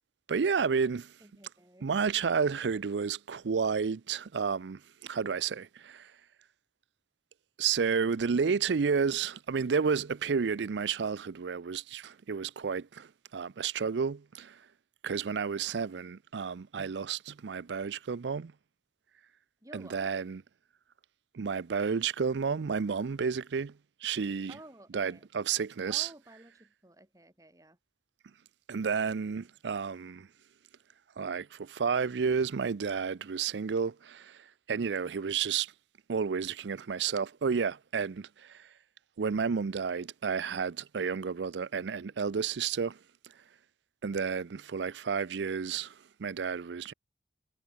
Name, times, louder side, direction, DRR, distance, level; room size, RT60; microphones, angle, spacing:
voice 1, 0.3-1.1 1.8-6.1 7.6-14.6 15.0-18.5 19.7-20.4 21.3-24.6 24.9-26.1 28.7-30.3 31.2-35.7 36.1-38.7 39.2-43.0 44.0-46.9, right 6 dB, 75° right, 0.5 m, -31 dB
voice 2, 1.2-1.9 19.6-20.1 24.5-25.3 25.9-27.8, right 1 dB, 20° right, 3.6 m, -53 dB
head